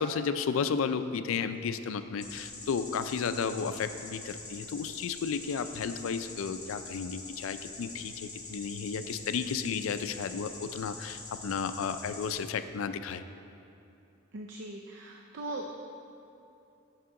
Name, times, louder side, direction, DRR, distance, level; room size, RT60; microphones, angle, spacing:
voice 1, 0.0-13.2, left 6 dB, 65° left, 11 dB, 0.4 m, -33 dB
sound 1, 2.2-12.3, left 3 dB, 35° left, 1.3 m, -45 dB
voice 2, 14.3-15.7, right 2 dB, 55° right, 2 dB, 0.5 m, -39 dB
8.5 x 6.8 x 3.7 m, 2.8 s
head